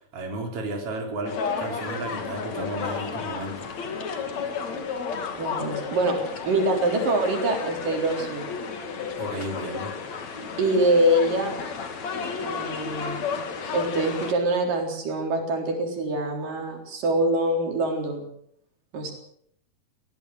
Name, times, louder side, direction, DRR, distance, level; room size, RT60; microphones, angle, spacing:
voice 1, 0.1-3.7 9.1-9.9, right 2 dB, 45° right, 2 dB, 4.8 m, -33 dB
sound 1, 1.2-14.3, left 5 dB, 55° left, 3.5 m, -32 dB
voice 2, 5.4-6.2 6.4-8.5 10.6-11.5 12.4-13.2 13.7-18.3 18.9-19.1, right 1 dB, 75° right, 2 dB, 5.6 m, -24 dB
21.5 x 17.5 x 7.9 m, 0.68 s
omnidirectional pair, 3.8 m